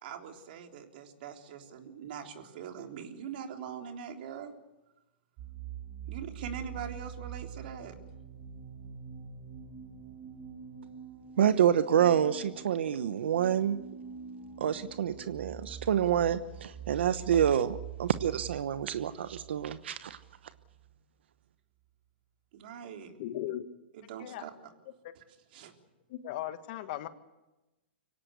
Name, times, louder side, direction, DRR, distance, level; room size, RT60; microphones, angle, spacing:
voice 1, 0.0-4.5 6.1-7.9 22.5-23.1 23.9-24.7 25.2-25.3 25.5-25.7, right 7 dB, 55° right, 4 dB, 3.6 m, -42 dB
sound 1, 5.4-20.9, right 8 dB, 40° right, 5.3 m, -45 dB
voice 2, 11.4-13.8 14.6-20.2, right 9 dB, 75° right, 13 dB, 1.0 m, -27 dB
voice 3, 23.2-23.7 24.2-24.4 25.0-25.1 26.1-27.1, left 13 dB, 50° left, 10 dB, 1.7 m, -37 dB
24.0 x 17.5 x 8.3 m, 1.0 s
hypercardioid pair, 135°, 6 cm